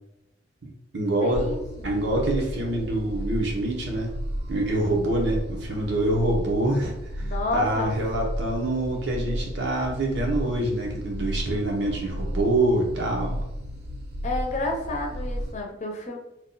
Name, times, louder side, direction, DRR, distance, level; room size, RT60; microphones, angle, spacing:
voice 1, 0.6-1.5 1.8-4.1 4.5-13.5, right 1 dB, 90° right, 0 dB, 0.9 m, -26 dB
voice 2, 1.2-2.0 7.2-8.0 14.2-16.2, left 2 dB, 40° left, 1 dB, 0.7 m, -30 dB
sound 1, 1.3-15.5, equal, 60° right, 0.6 m, -33 dB
2.8 x 2.3 x 3.8 m, 0.92 s
head